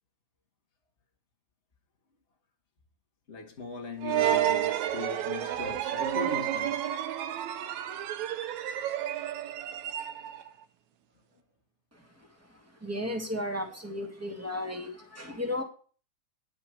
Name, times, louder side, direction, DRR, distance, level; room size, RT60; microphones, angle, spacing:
voice 1, 3.3-6.9, left 4 dB, 30° left, 1.3 m, -39 dB
sound 1, 4.0-10.5, right 11 dB, 80° right, 2.0 m, -30 dB
voice 2, 12.8-15.6, left 1 dB, 5° right, 1.4 m, -34 dB
10.0 x 5.8 x 7.9 m
omnidirectional pair, 3.4 m